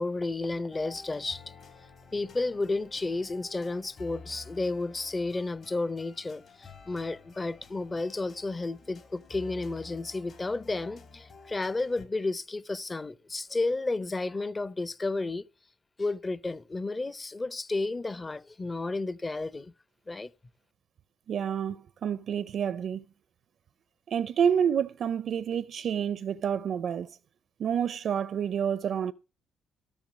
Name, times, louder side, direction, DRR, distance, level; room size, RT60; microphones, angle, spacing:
voice 1, 0.0-1.5 2.1-15.5 16.0-19.7 20.1-20.3, left 2 dB, 25° left, 0.6 m, -32 dB
sound 1, 0.7-12.1, left 4 dB, 55° left, 3.1 m, -51 dB
voice 2, 21.3-23.0 24.1-27.1 27.6-29.1, right 8 dB, 60° right, 0.5 m, -28 dB
13.5 x 6.7 x 6.1 m
cardioid pair, 90°, 0 cm